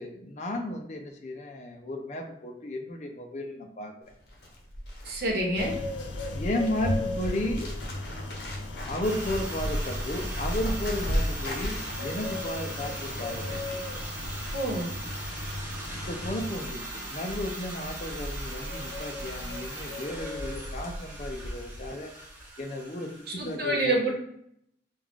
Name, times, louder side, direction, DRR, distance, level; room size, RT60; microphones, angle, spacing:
voice 1, 0.0-3.9 6.3-7.7 8.9-13.8 16.0-22.1 22.6-24.1, left 1 dB, 40° left, 3 dB, 0.5 m, -34 dB
Bird, 4.1-21.9 22.2-22.5, left 1 dB, 65° left, 1.0 m, -36 dB
voice 2, 5.0-5.8 14.5-14.9 23.4-24.1, right 1 dB, 60° right, 0 dB, 1.0 m, -27 dB
sound 1, 5.6-16.5, left 1 dB, 85° left, 0.6 m, -38 dB
sound 2, 9.0-23.6, right 1 dB, 10° right, 0.7 m, -40 dB
4.9 x 2.3 x 3.6 m, 0.73 s
head